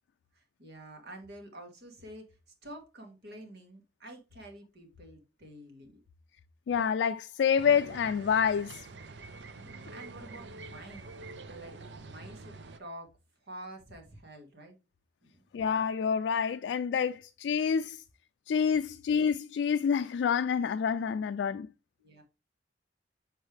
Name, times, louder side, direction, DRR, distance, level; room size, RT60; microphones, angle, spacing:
voice 1, 0.3-2.2 2.6-6.0 9.3-11.1 11.5-13.1 13.4-14.8 15.2-15.4 22.0-22.2, right 1 dB, 65° right, 1.9 m, -48 dB
voice 2, 6.7-8.9 15.5-18.0 18.5-21.7, left 7 dB, 85° left, 0.3 m, -28 dB
sound 1, 7.6-12.8, right 3 dB, 80° right, 0.7 m, -46 dB
6.3 x 4.4 x 3.4 m
head